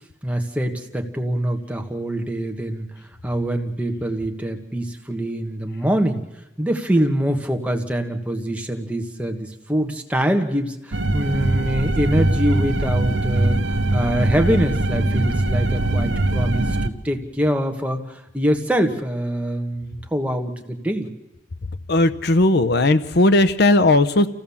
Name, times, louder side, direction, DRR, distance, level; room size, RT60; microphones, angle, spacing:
voice 1, 0.2-2.9 3.2-6.2 6.6-21.1, equal, 5° right, 3 dB, 1.5 m, -24 dB
sound 1, 10.9-16.9, right 2 dB, 80° right, 1.0 m, -21 dB
voice 2, 21.9-24.3, left 2 dB, 60° left, 12 dB, 0.8 m, -16 dB
28.0 x 16.0 x 7.2 m, 0.98 s
head